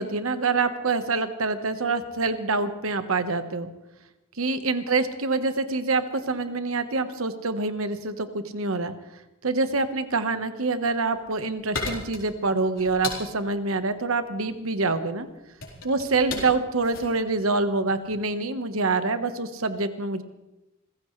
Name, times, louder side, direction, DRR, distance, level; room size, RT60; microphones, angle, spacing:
voice 1, 0.0-3.7 4.4-8.9 9.4-15.3 15.8-20.2, right 3 dB, 80° right, 9 dB, 1.3 m, -26 dB
sound 1, 10.9-18.3, left 4 dB, 65° left, 4.2 m, -37 dB
28.0 x 15.5 x 3.3 m, 0.97 s
head